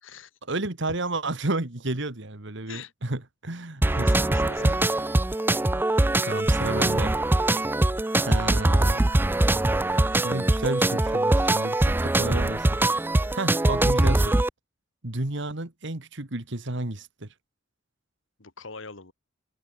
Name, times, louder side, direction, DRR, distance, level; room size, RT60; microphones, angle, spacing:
voice 1, 0.5-4.1 4.6-4.7 6.2-7.1 8.2-9.1 10.2-12.8 13.3-14.4 15.0-17.3, right 2 dB, 65° right, 2.1 m, -31 dB
sound 1, 3.8-14.5, right 2 dB, 10° right, 0.4 m, -22 dB
voice 2, 3.9-4.9 18.4-19.1, left 4 dB, 75° left, 2.2 m, -42 dB
open air
head